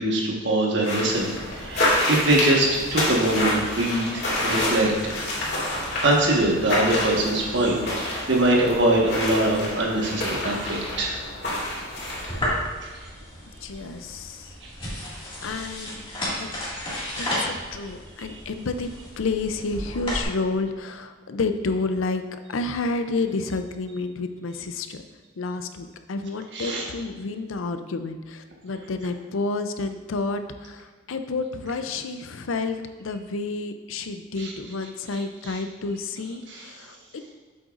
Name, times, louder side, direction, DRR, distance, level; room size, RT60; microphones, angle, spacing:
voice 1, 0.0-5.1 6.0-11.2 26.5-26.8 34.4-34.5 36.5-36.6, right 1 dB, 60° right, -2 dB, 1.5 m, -23 dB
sound 1, 0.8-12.4, left 1 dB, 55° left, 2.3 m, -28 dB
sound 2, 12.3-20.2, equal, 25° left, 2.1 m, -33 dB
voice 2, 13.6-14.5 15.0-16.0 16.4-16.5 17.2-18.9 19.2-25.0 25.4-37.2, left 3 dB, 85° left, 8 dB, 0.5 m, -30 dB
7.8 x 7.7 x 2.5 m, 1.4 s
head